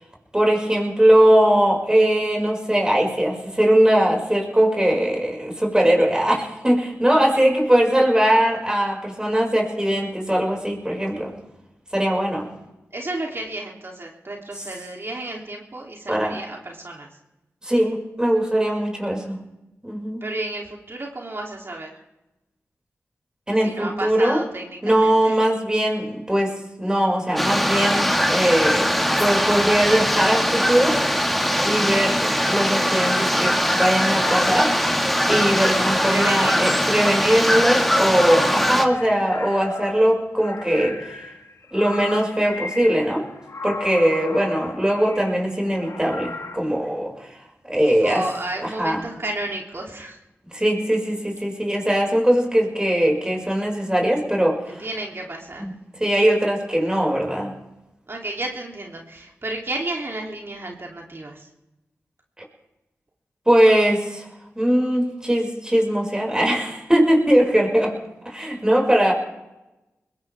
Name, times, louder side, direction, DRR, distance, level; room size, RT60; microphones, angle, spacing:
voice 1, 0.3-11.3 11.9-12.5 16.1-16.4 17.6-19.4 19.8-20.2 23.5-24.4 24.8-31.0 31.6-35.0 35.3-41.2 41.7-43.2 43.6-47.3 47.6-48.2 48.6-49.0 50.5-54.9 55.6-55.7 56.0-57.5 63.5-64.3 64.6-67.9 68.3-69.1, right 1 dB, 15° right, 0 dB, 5.7 m, -20 dB
voice 2, 12.9-17.1 20.2-21.9 23.6-25.3 36.1-36.9 47.8-50.2 54.8-55.7 58.1-61.5, right 2 dB, 45° right, 0 dB, 3.1 m, -32 dB
sound 1, 27.4-38.9, equal, ahead, 1.9 m, -21 dB
sound 2, 33.6-34.8 35.5-36.5 37.2-46.6, left 3 dB, 65° left, 1.8 m, -36 dB
21.0 x 18.0 x 3.6 m, 0.96 s
cardioid pair, 40°, 6 cm